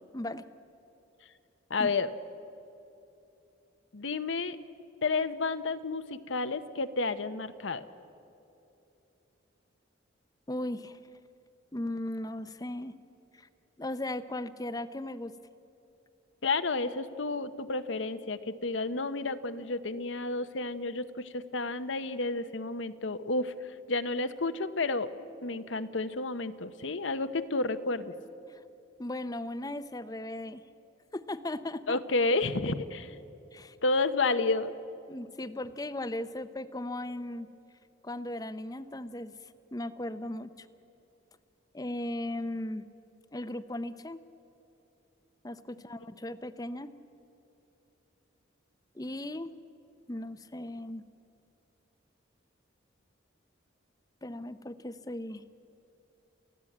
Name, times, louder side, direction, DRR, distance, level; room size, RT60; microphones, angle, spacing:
voice 1, 0.1-0.4 1.8-1.9 10.5-11.0 11.7-12.9 13.3-13.5 13.8-15.3 28.5-28.6 29.0-30.6 31.1-32.0 33.5-33.8 34.3-34.4 35.1-37.5 38.0-39.3 39.7-40.7 41.7-42.8 43.3-44.2 45.4-46.9 48.9-49.5 50.1-51.0 54.2-55.4, left 1 dB, 20° left, 13 dB, 0.7 m, -37 dB
voice 2, 1.7-2.1 3.9-4.6 5.0-7.8 16.4-23.5 23.9-25.1 25.4-28.1 31.9-33.1 33.8-34.7, left 3 dB, 75° left, 11 dB, 0.9 m, -31 dB
29.0 x 15.0 x 8.6 m, 2.8 s
head